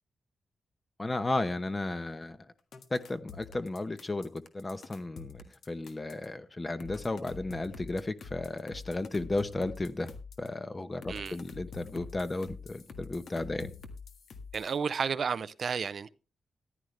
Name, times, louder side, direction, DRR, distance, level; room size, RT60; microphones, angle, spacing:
voice 1, 1.0-2.4 2.9-10.1 10.4-13.7, left 2 dB, 20° left, 0.9 m, -34 dB
sound 1, 2.7-6.3 6.8-10.5 11.0-14.8, left 5 dB, 70° left, 1.6 m, -46 dB
voice 2, 14.5-16.1, right 6 dB, 55° right, 0.5 m, -32 dB
14.0 x 11.0 x 3.3 m
wide cardioid pair, 130°, 0 cm